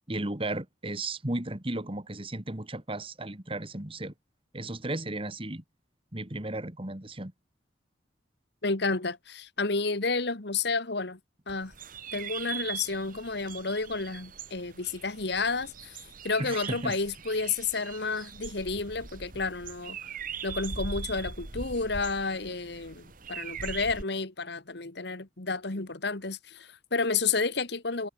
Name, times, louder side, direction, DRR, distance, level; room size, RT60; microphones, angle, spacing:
voice 1, 0.1-4.1 4.5-5.6 6.1-7.3 16.4-17.0, right 2 dB, 30° right, 2.1 m, -34 dB
voice 2, 8.6-11.2 11.5-11.7 12.1-20.0 20.4-28.1, left 4 dB, 60° left, 1.8 m, -31 dB
sound 1, 11.5-24.0, right 5 dB, 45° right, 1.7 m, -41 dB
head